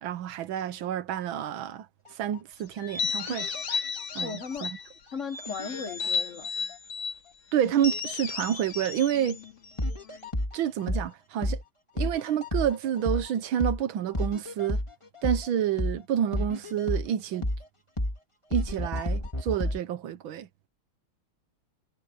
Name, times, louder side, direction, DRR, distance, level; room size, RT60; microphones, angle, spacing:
voice 1, 0.0-1.9 2.2-3.5 4.1-4.8 7.5-9.4 10.5-11.6 12.0-14.8 15.2-17.5 18.5-20.5, right 10 dB, 80° right, 1.6 m, -29 dB
sound 1, 2.1-2.4 3.3-4.5 5.5-6.4 6.7-6.8 7.6-8.1 8.6-8.7 9.8-11.1 11.4-11.6 12.0-13.3 13.6-13.8 14.1-15.5 15.8-16.0 16.3-17.7 18.0-18.2 18.5-19.8, left 1 dB, 15° left, 2.5 m, -31 dB
sound 2, 2.8-4.9 5.3-7.2 7.8-10.3, left 5 dB, 75° left, 2.9 m, -34 dB
voice 2, 4.2-4.7 5.1-6.5, left 5 dB, 50° left, 1.0 m, -36 dB
omnidirectional pair, 2.2 m